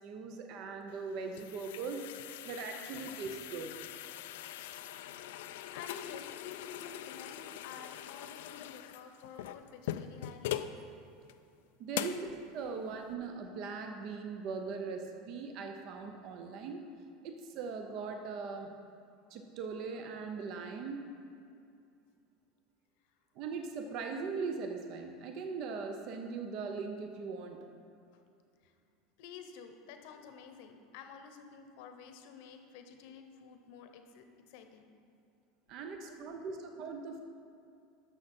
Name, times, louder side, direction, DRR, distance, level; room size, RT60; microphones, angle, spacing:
voice 1, 0.0-3.8 11.8-16.8 17.2-18.7 19.3-21.1 23.3-27.7 35.7-37.2, right 4 dB, 45° right, 5 dB, 0.7 m, -40 dB
sound 1, 0.9-10.8 11.3-11.4 11.9-12.3, left 12 dB, 85° left, 0.4 m, -42 dB
voice 2, 5.3-10.7 12.0-12.2 12.6-12.8 28.6-28.7 29.2-34.9 35.8-36.4, left 6 dB, 65° left, 6 dB, 0.9 m, -51 dB
12.0 x 6.5 x 4.3 m, 2.5 s
supercardioid pair, 160°, 0 cm